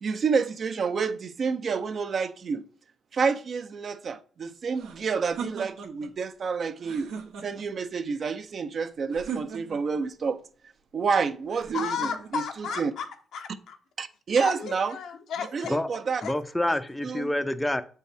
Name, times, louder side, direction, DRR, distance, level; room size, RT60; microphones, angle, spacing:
voice 1, 0.0-2.6 3.1-7.1 7.4-10.4 10.9-12.9 14.0-15.0 15.5-16.2 17.0-17.3, right 5 dB, 50° right, 0.5 m, -29 dB
sound 1, 4.7-6.1 6.8-7.8 9.1-10.0 11.5-12.3, right 6 dB, 80° right, 0.8 m, -39 dB
voice 2, 11.7-13.1 13.3-13.8 14.4-15.7 16.2-16.3 16.6-16.7, left 6 dB, 75° left, 0.9 m, -34 dB
voice 3, 16.2-17.8, left 1 dB, 10° left, 0.5 m, -27 dB
6.9 x 4.5 x 3.4 m
cardioid pair, 90°, 0 cm